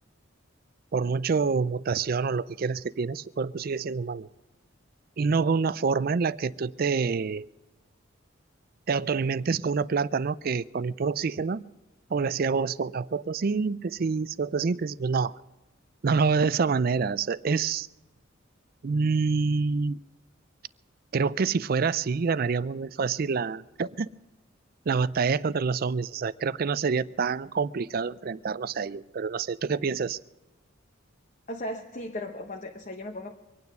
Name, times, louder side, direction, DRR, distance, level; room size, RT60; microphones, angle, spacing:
voice 1, 0.9-4.3 5.2-7.5 8.9-11.6 12.1-15.3 16.0-17.9 18.8-20.0 21.1-24.1 24.9-30.2, right 5 dB, 50° right, 17 dB, 0.4 m, -27 dB
voice 2, 31.5-33.3, left 1 dB, 40° left, 2 dB, 1.0 m, -36 dB
24.0 x 9.5 x 5.4 m, 1.1 s
head